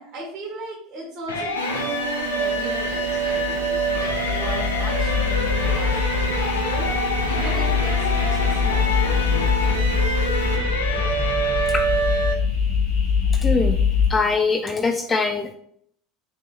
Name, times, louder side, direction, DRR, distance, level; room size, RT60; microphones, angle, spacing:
voice 1, 0.0-10.1, right 2 dB, 40° right, -4 dB, 1.3 m, -37 dB
sound 1, 1.3-12.3, equal, 85° left, 0.6 m, -26 dB
sound 2, 1.6-10.6, right 6 dB, 85° right, 0.5 m, -32 dB
sound 3, 2.1-14.1, left 6 dB, 65° left, 1.1 m, -24 dB
voice 2, 13.3-13.8 14.1-15.5, left 4 dB, 20° left, 5 dB, 0.3 m, -22 dB
3.9 x 2.8 x 2.3 m, 0.66 s
hypercardioid pair, 75°, 0 cm